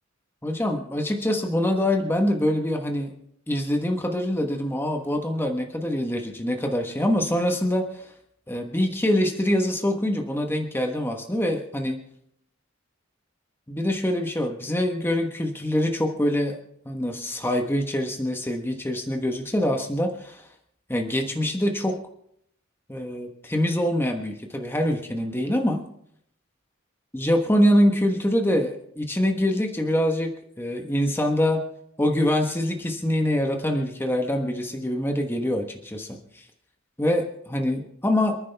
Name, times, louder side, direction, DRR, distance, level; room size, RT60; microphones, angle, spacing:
voice 1, 0.4-3.1 3.5-8.1 8.5-12.0 13.7-16.6 16.8-20.5 20.9-22.0 22.9-25.8 27.1-31.6 32.0-36.4 37.0-38.4, left 1 dB, 10° left, 3 dB, 1.2 m, -24 dB
28.5 x 9.8 x 3.5 m, 0.71 s
head